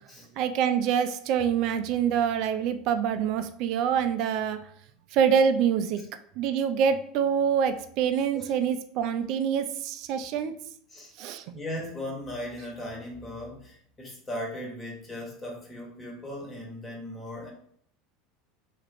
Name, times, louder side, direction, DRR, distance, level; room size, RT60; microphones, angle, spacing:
voice 1, 0.4-4.6 5.1-6.0 6.4-10.5 11.2-11.4, right 8 dB, 60° right, 9 dB, 0.3 m, -25 dB
voice 2, 11.5-17.5, left 1 dB, 20° left, -2 dB, 1.2 m, -38 dB
2.8 x 2.4 x 3.4 m, 0.65 s
hypercardioid pair, 95°, 0 cm